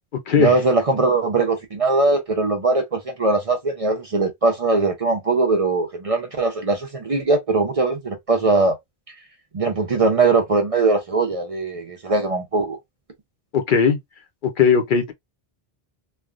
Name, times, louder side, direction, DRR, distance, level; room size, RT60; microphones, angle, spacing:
voice 1, 0.4-8.8 9.5-12.8, right 3 dB, 40° right, 0.6 m, -20 dB
voice 2, 13.5-14.0 14.4-15.1, left 6 dB, 60° left, 0.7 m, -18 dB
3.2 x 2.2 x 2.4 m
omnidirectional pair, 1.0 m